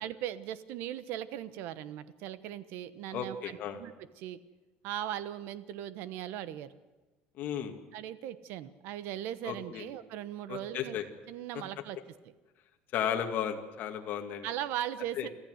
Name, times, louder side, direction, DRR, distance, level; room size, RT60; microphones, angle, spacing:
voice 1, 0.0-4.4 4.8-6.7 7.9-11.0 11.3-12.0 14.4-15.3, right 11 dB, 65° right, 14 dB, 1.1 m, -39 dB
voice 2, 3.1-3.8 7.4-7.7 9.4-9.9 10.5-11.0 12.9-14.5 15.2-15.3, left 8 dB, 45° left, 3 dB, 2.3 m, -34 dB
25.5 x 14.5 x 8.1 m, 1.2 s
cardioid pair, 165°, 4 cm